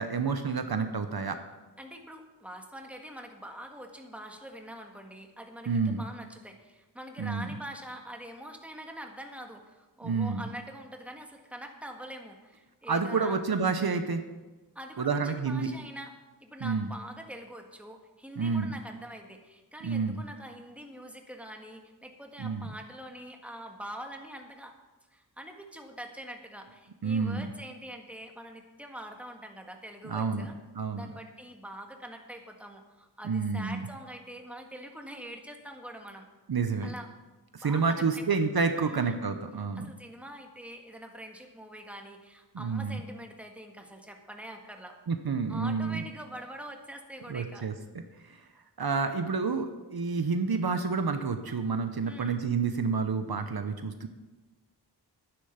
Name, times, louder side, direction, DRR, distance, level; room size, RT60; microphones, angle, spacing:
voice 1, 0.0-1.4 5.7-6.0 7.2-7.5 10.0-10.4 12.9-14.2 15.0-15.7 16.6-16.9 18.4-18.7 19.8-20.2 22.4-22.7 27.0-27.5 30.0-30.5 30.8-31.1 33.2-33.8 36.5-36.9 37.5-39.9 42.5-43.0 45.1-46.0 47.3-47.7 48.8-54.1, right 5 dB, 60° right, 7 dB, 0.9 m, -29 dB
voice 2, 1.8-13.4 14.7-16.1 16.4-24.7 25.1-30.6 30.9-36.3 36.8-37.1 37.6-38.2 38.7-39.2 39.8-45.0 45.5-47.7 52.0-52.4, equal, 5° right, 3 dB, 1.6 m, -44 dB
11.0 x 10.0 x 5.8 m, 1.2 s
wide cardioid pair, 90°, 41 cm